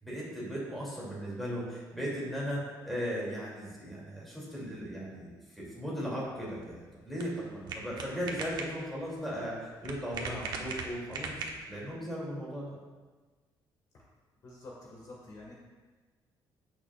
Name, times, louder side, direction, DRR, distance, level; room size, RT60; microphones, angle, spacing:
voice 1, 0.0-5.3 5.5-11.3 11.7-12.7, equal, ahead, -7 dB, 2.9 m, -37 dB
sound 1, 6.3-11.9, right 4 dB, 55° right, 1.1 m, -41 dB
voice 2, 14.4-15.5, left 2 dB, 45° left, -3 dB, 1.8 m, -48 dB
15.0 x 6.3 x 2.5 m, 1.3 s
cardioid pair, 155°, 8 cm